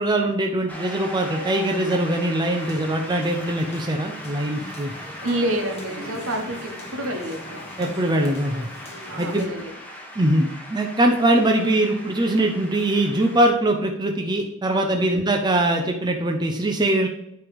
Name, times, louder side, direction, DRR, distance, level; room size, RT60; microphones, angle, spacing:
voice 1, 0.0-4.9 7.8-8.7 9.2-9.5 10.2-17.1, right 1 dB, 20° right, 2 dB, 0.6 m, -22 dB
Shout / Cheering / Applause, 0.7-13.5, equal, 10° left, 1.2 m, -39 dB
sound 1, 2.6-9.5, left 2 dB, 30° left, 1.3 m, -41 dB
voice 2, 5.2-7.7 9.1-9.7 15.1-15.2, right 1 dB, 65° right, 3 dB, 1.3 m, -28 dB
8.8 x 3.4 x 5.3 m, 0.82 s
head